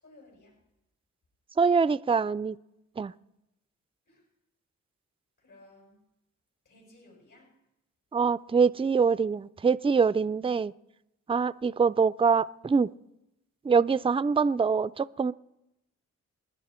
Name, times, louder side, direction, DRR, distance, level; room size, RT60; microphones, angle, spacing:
voice 1, 0.0-0.6 4.0-4.2 5.4-6.0 6.6-7.5, left 2 dB, 70° left, -2 dB, 6.5 m, -56 dB
voice 2, 1.6-2.6 3.0-3.1 8.1-10.7 11.3-12.9 13.6-15.3, right 5 dB, 20° right, 15 dB, 0.4 m, -24 dB
28.5 x 10.0 x 4.4 m, 0.92 s
cardioid pair, 50°, 31 cm